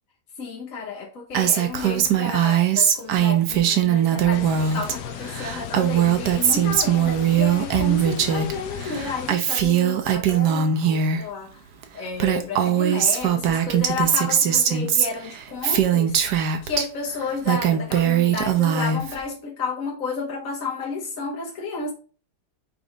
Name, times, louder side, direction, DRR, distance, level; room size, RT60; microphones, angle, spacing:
voice 1, 0.4-11.6 11.9-21.9, left 4 dB, 55° left, 1.5 m, -32 dB
Female speech woman speaking, 1.3-4.9 5.2-8.5 8.8-11.2 11.8-11.9 12.1-16.8 17.3-19.2, right 9 dB, 90° right, 1.5 m, -21 dB
sound 1, 4.3-9.3, left 9 dB, 85° left, 1.3 m, -36 dB
5.3 x 3.7 x 5.0 m
omnidirectional pair, 1.7 m